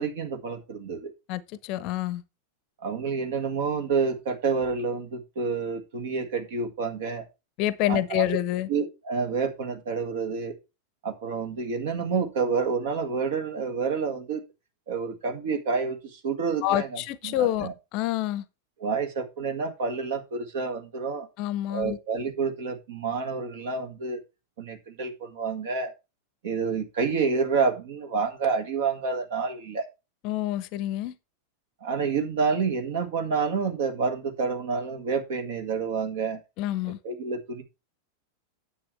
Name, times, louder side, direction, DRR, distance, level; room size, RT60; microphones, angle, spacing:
voice 1, 0.0-1.1 2.8-7.3 7.9-8.4 8.7-10.5 11.0-14.4 14.9-17.7 18.8-21.3 21.7-24.2 24.6-25.9 26.4-29.9 31.8-36.4 37.0-37.6, right 5 dB, 55° right, 1.8 m, -28 dB
voice 2, 1.3-2.2 7.6-8.7 16.6-18.4 21.4-22.0 30.2-31.1 36.6-37.0, left 14 dB, 40° left, 0.8 m, -27 dB
9.6 x 7.8 x 3.3 m
figure-of-eight pair, 90°, 0 cm